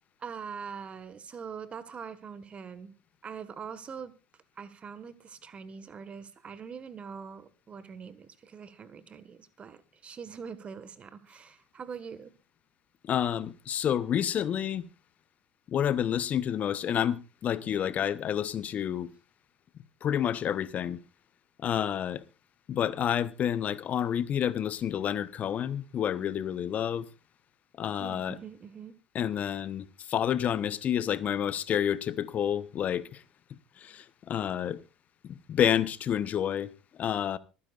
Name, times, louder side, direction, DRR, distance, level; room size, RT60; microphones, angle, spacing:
voice 1, 0.2-2.9 3.2-4.1 4.6-12.3 28.0-28.9, right 6 dB, 35° right, 1.6 m, -43 dB
voice 2, 13.0-14.9 15.7-19.1 20.0-21.0 21.6-22.2 22.7-27.1 27.8-28.4 29.1-33.2 33.8-34.8 35.2-36.7 37.0-37.4, left 9 dB, 40° left, 1.0 m, -29 dB
25.5 x 9.9 x 2.5 m
hypercardioid pair, 70°, 4 cm